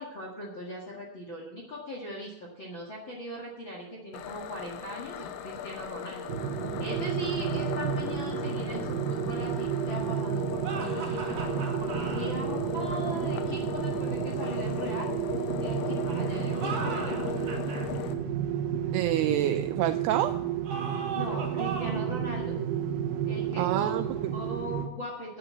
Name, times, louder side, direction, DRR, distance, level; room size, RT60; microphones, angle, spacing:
voice 1, 0.0-6.3 6.8-11.4 11.8-15.1 15.6-17.2 21.1-22.6 23.3-25.4, equal, 55° left, -1 dB, 1.3 m, -39 dB
sound 1, 4.1-18.1, left 9 dB, 90° left, 3.2 m, -38 dB
sound 2, 6.3-24.9, right 9 dB, 75° right, 2.0 m, -31 dB
sound 3, 10.6-12.3 16.4-17.9 20.6-22.1, right 5 dB, 50° right, 2.9 m, -37 dB
voice 2, 18.9-20.4 23.6-24.3, right 12 dB, 90° right, 9 dB, 2.3 m, -27 dB
11.5 x 8.9 x 5.7 m, 0.92 s
omnidirectional pair, 5.3 m